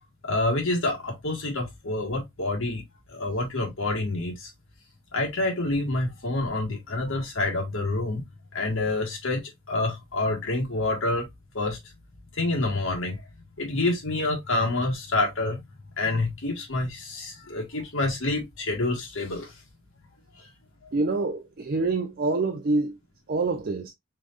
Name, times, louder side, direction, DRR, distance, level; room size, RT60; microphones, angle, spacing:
voice 1, 0.2-2.8 3.1-4.5 5.1-8.2 8.5-9.4 9.7-11.3 11.5-11.8 12.3-13.2 13.6-15.6 16.0-19.5 20.4-20.5 20.8-20.9, left 2 dB, 65° left, 1.7 m, -27 dB
voice 2, 20.9-23.0 23.3-23.9, right 3 dB, 45° right, 0.5 m, -26 dB
4.8 x 3.9 x 2.5 m
head